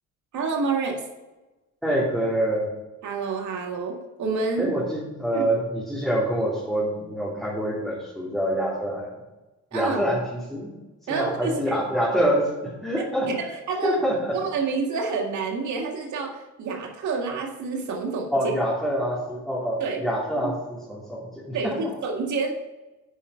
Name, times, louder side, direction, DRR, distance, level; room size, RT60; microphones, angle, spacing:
voice 1, 0.3-1.1 3.0-4.7 5.3-5.4 9.7-10.0 11.1-11.8 13.7-14.0 14.3-18.5 19.8-20.0 20.4-20.5 21.5-22.5, right 4 dB, 70° right, 1 dB, 1.9 m, -28 dB
voice 2, 1.8-2.7 4.6-9.1 9.7-10.7 11.0-13.5 13.8-14.4 18.3-21.8, equal, ahead, -7 dB, 3.2 m, -26 dB
9.9 x 5.5 x 5.6 m, 1.1 s
cardioid pair, 90°, 30 cm